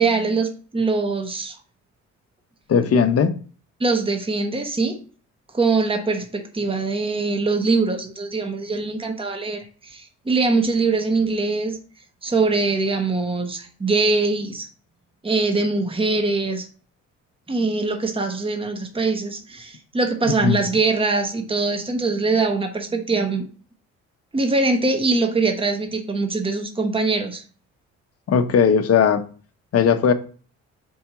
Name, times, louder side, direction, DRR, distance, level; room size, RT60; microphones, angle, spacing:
voice 1, 0.0-1.6 3.8-5.0 5.5-11.8 12.2-14.7 15.2-16.7 17.5-23.5 24.3-27.4, right 3 dB, 20° right, 5 dB, 1.1 m, -22 dB
voice 2, 2.7-3.3 20.4-20.6 28.3-29.2 29.7-30.1, left 7 dB, 50° left, 9 dB, 0.9 m, -17 dB
4.7 x 4.3 x 5.9 m, 0.40 s
cardioid pair, 90°, 30 cm